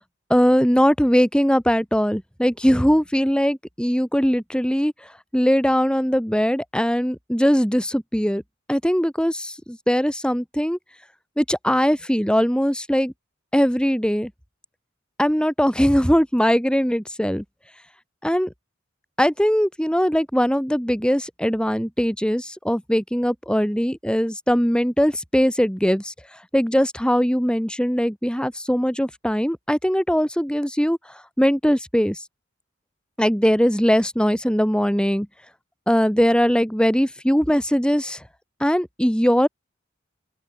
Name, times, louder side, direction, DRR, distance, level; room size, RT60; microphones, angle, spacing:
voice 1, 0.3-4.9 5.3-8.4 8.7-10.8 11.4-13.1 13.5-14.3 15.2-17.4 18.2-18.5 19.2-26.1 26.5-31.0 31.4-32.2 33.2-35.3 35.9-38.2 38.6-39.5, equal, 5° left, 5.6 m, -20 dB
open air
head